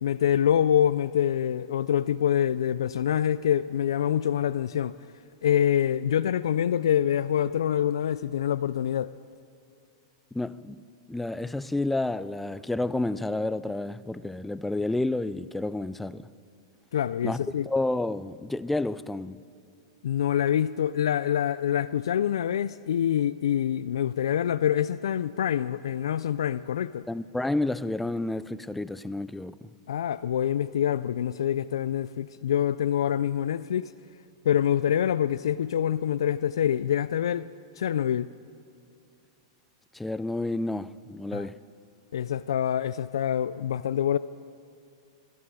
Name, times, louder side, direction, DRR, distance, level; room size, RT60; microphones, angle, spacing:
voice 1, 0.0-5.0 5.4-9.1 16.9-17.7 20.0-27.1 29.9-33.9 34.4-37.5 37.8-38.3 41.3-41.5 42.1-44.2, left 10 dB, 90° left, 0.3 m, -26 dB
voice 2, 10.3-10.8 11.1-16.2 17.2-19.4 27.1-29.6 39.9-41.6, left 2 dB, 5° left, 0.4 m, -30 dB
20.5 x 13.0 x 4.9 m
hypercardioid pair, 140°, 3 cm